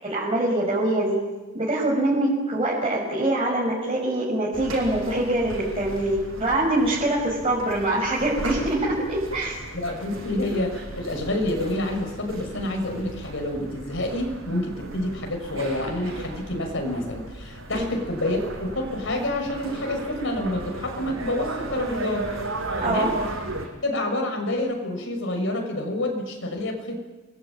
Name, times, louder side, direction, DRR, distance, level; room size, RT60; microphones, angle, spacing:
voice 1, 0.0-1.2 1.5-9.6 17.7-17.9 22.8-23.1, right 1 dB, 30° right, -5 dB, 6.1 m, -24 dB
sound 1, 4.5-23.7, right 2 dB, 85° right, 6.5 m, -36 dB
voice 2, 9.7-22.3 22.8-23.2 23.8-27.0, left 1 dB, 70° left, 3 dB, 6.5 m, -28 dB
29.0 x 22.0 x 9.0 m, 1.2 s
head